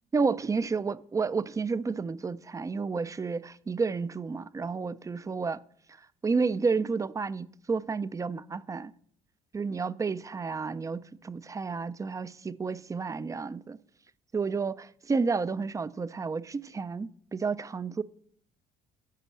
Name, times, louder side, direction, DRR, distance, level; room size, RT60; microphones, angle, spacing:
voice 1, 0.1-5.6 6.2-8.9 9.5-13.8 14.3-18.0, right 4 dB, 20° right, 0.4 m, -31 dB
12.5 x 5.3 x 7.3 m
cardioid pair, 110°, 17 cm